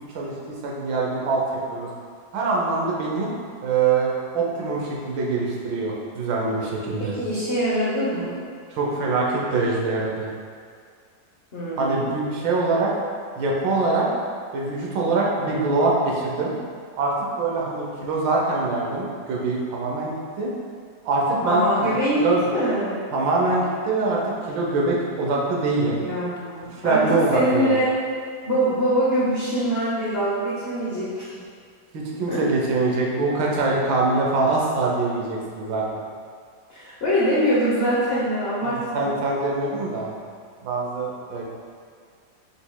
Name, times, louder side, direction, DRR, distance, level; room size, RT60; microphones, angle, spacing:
voice 1, 0.1-1.4 1.7-1.9 2.3-3.3 3.6-7.1 8.8-10.3 11.8-12.9 13.4-14.1 14.5-16.5 17.0-20.5 21.0-22.5 23.1-24.2 24.5-26.0 26.8-27.7 31.9-35.8 38.6-40.1 40.6-41.4, right 3 dB, 90° right, -3 dB, 1.5 m, -24 dB
voice 2, 7.0-8.4 11.5-12.1 21.4-22.3 22.5-23.0 26.0-27.9 28.4-31.4 32.3-32.4 36.7-39.1, equal, 50° left, -9 dB, 0.7 m, -23 dB
5.7 x 4.0 x 2.2 m, 2.1 s
omnidirectional pair, 2.0 m